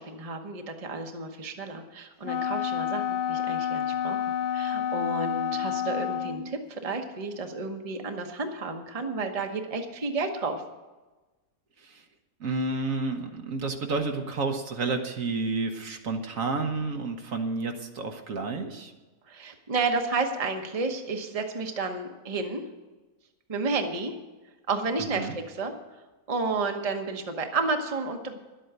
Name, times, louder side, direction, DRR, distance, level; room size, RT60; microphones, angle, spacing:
voice 1, 0.0-10.6 19.3-22.6 23.5-24.1 24.7-25.7 26.3-28.4, right 3 dB, 25° right, 4 dB, 1.1 m, -31 dB
Wind instrument woodwind instrument, 2.2-6.5, left 9 dB, 65° left, 0.6 m, -29 dB
voice 2, 12.4-18.9 25.1-25.4, right 3 dB, 65° right, 4 dB, 1.5 m, -30 dB
11.5 x 8.5 x 8.0 m, 1.2 s
omnidirectional pair, 1.5 m